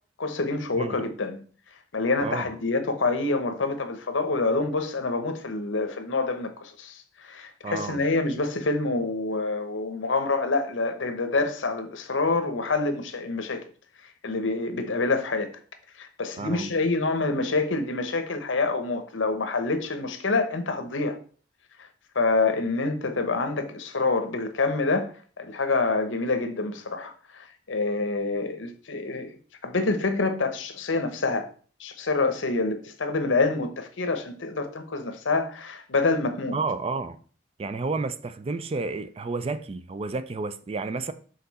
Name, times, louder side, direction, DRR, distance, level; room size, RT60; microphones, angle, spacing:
voice 1, 0.2-1.4 1.9-13.6 14.2-15.5 16.0-21.2 22.1-29.3 29.6-31.5 31.8-36.6, left 3 dB, 75° left, 0.9 m, -27 dB
voice 2, 7.6-8.0 16.4-16.7 36.5-37.2 37.6-41.1, right 3 dB, 30° right, 0.4 m, -31 dB
6.8 x 3.8 x 4.1 m
head